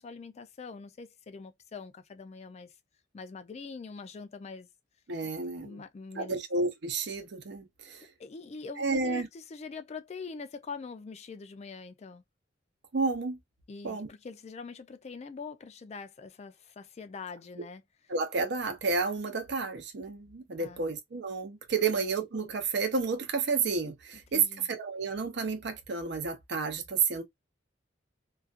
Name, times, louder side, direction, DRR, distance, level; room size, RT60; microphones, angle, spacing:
voice 1, 0.0-2.7 3.1-4.7 5.2-5.3 5.6-6.4 7.9-12.2 13.7-17.8 20.6-20.8 21.8-21.9 24.3-24.7, left 4 dB, 35° left, 0.3 m, -44 dB
voice 2, 5.1-5.8 6.1-8.1 8.8-9.3 12.9-13.4 13.8-14.1 18.1-27.2, right 4 dB, 65° right, 0.6 m, -31 dB
2.4 x 2.2 x 2.4 m
head